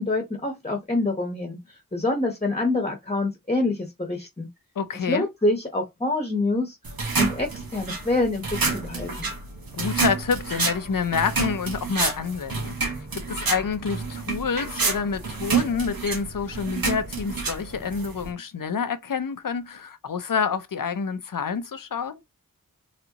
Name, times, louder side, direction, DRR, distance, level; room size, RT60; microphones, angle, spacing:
voice 1, 0.0-1.6 1.9-4.5 5.1-6.8 7.2-9.3, left 2 dB, 20° left, 1.0 m, -26 dB
voice 2, 4.8-5.3 9.7-22.1, left 6 dB, 70° left, 0.7 m, -28 dB
sound 1, 6.8-18.3, right 4 dB, 85° right, 1.2 m, -29 dB
4.1 x 3.3 x 2.9 m
wide cardioid pair, 65°, 34 cm